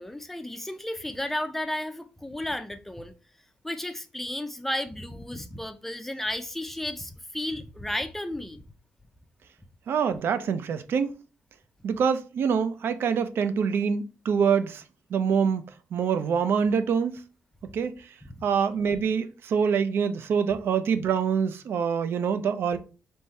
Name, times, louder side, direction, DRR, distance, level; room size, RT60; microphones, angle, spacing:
voice 1, 0.0-3.1 3.6-8.6 18.2-18.4, left 1 dB, 5° left, 0.4 m, -33 dB
voice 2, 9.9-11.1 11.8-14.8 15.1-15.6 15.9-17.2 17.7-17.9 18.4-22.8, right 6 dB, 65° right, 0.5 m, -25 dB
3.5 x 2.7 x 4.3 m
wide cardioid pair, 150°, 4 cm